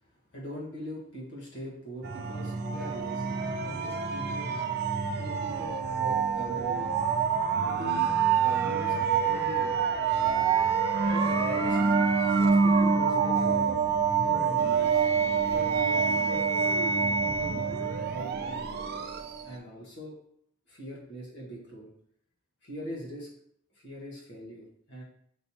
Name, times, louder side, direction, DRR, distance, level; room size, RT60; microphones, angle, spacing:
voice 1, 0.3-4.5 5.2-6.9 7.6-8.0 8.4-9.8 11.1-11.8 12.3-13.7 14.2-15.0 15.5-16.5 17.2-19.0 19.4-20.1 20.7-21.9 22.6-23.3 23.8-25.0, equal, 60° left, -4 dB, 1.2 m, -42 dB
sound 1, 2.0-19.6, right 5 dB, 50° right, 0.4 m, -26 dB
5.3 x 2.9 x 2.8 m, 0.65 s
head